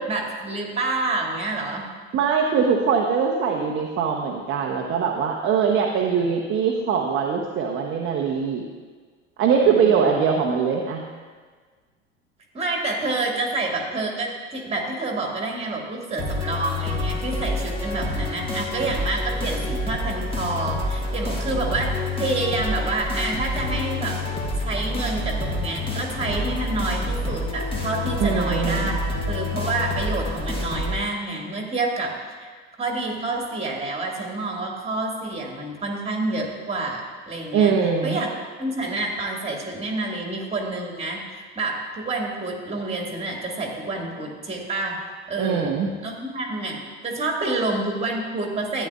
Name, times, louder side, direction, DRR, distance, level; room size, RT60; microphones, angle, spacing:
voice 1, 0.1-1.8 9.6-10.1 12.5-24.2 24.6-28.9 29.3-32.1 32.4-32.5 32.8-37.7 38.0-38.3 38.6-45.0 45.3-45.7 46.0-48.9, right 2 dB, 15° right, 0 dB, 2.0 m, -28 dB
voice 2, 2.1-8.7 9.4-11.0 28.2-28.9 37.5-38.2 45.4-45.9, right 6 dB, 35° right, 1 dB, 0.9 m, -22 dB
sound 1, 16.2-31.0, left 2 dB, 15° left, 1.5 m, -28 dB
13.0 x 9.3 x 2.4 m, 1.5 s
figure-of-eight pair, 70°, 37 cm